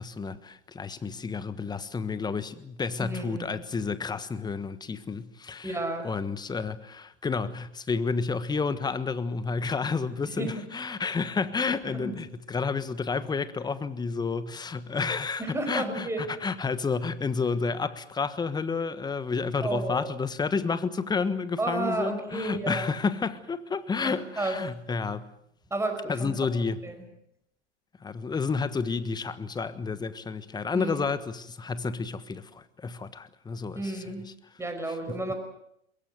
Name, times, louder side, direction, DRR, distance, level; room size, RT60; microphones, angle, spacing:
voice 1, 0.0-5.8 6.0-25.3 26.1-26.8 28.0-34.3 35.1-35.2, left 4 dB, 10° left, 1.4 m, -30 dB
voice 2, 3.0-3.5 5.6-6.1 10.4-10.7 11.8-12.2 15.4-16.3 19.6-20.1 21.6-22.9 24.0-24.6 25.7-26.4 26.8-27.0 30.7-31.0 33.8-34.2 34.6-35.3, right 2 dB, 10° right, 5.3 m, -32 dB
22.5 x 22.0 x 7.9 m
hypercardioid pair, 110°, 34 cm